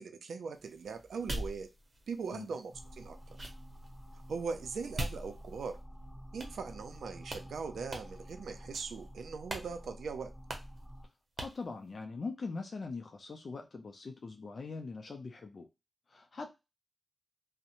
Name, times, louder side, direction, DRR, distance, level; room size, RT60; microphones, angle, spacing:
voice 1, 0.0-1.7 2.1-3.2 4.3-5.8 6.3-10.3, right 5 dB, 85° right, 8 dB, 0.4 m, -40 dB
sound 1, 0.5-5.9 6.4-7.0 7.2-7.5 7.9-8.3 8.7-9.1 9.5-9.7 9.9-10.0 10.5-10.8 11.4-11.6, right 1 dB, 50° right, 0.8 m, -43 dB
sound 2, 2.7-11.1, equal, 20° right, 0.9 m, -50 dB
voice 2, 11.4-15.7 16.1-16.5, left 4 dB, 60° left, 3 dB, 0.4 m, -42 dB
2.7 x 2.1 x 2.4 m, 0.25 s
cardioid pair, 45°, 0 cm